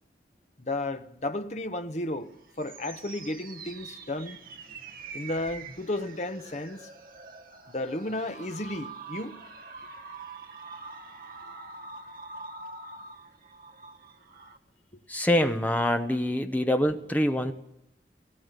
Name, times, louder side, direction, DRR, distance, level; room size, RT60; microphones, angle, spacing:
voice 1, 0.6-2.3 2.6-4.4 5.1-6.9 7.7-9.4, left 1 dB, 40° left, 1.1 m, -33 dB
sound 1, 2.2-14.6, right 4 dB, 50° right, 1.2 m, -45 dB
voice 2, 15.1-17.5, left 1 dB, 10° left, 1.0 m, -25 dB
18.5 x 17.0 x 8.3 m
head